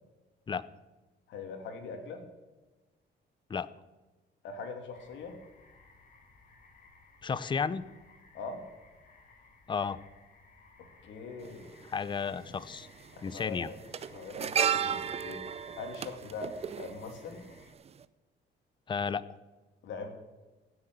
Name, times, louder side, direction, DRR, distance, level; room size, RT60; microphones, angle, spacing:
voice 1, 1.3-2.2 4.4-5.4 8.3-8.6 10.8-11.7 13.1-13.8 14.1-17.4 19.8-20.1, left 4 dB, 90° left, 4 dB, 3.0 m, -42 dB
sound 1, 4.9-17.7, left 3 dB, 45° left, 4.1 m, -60 dB
voice 2, 7.2-7.8 9.7-10.0 11.9-12.9 13.2-13.7 18.9-19.3, left 6 dB, 25° left, 16 dB, 0.6 m, -32 dB
sound 2, 11.4-11.5 12.7-13.0 13.3-17.6 17.9-18.0, right 8 dB, 35° right, 0.6 m, -33 dB
16.5 x 8.1 x 7.8 m, 1.2 s
cardioid pair, 130°, 19 cm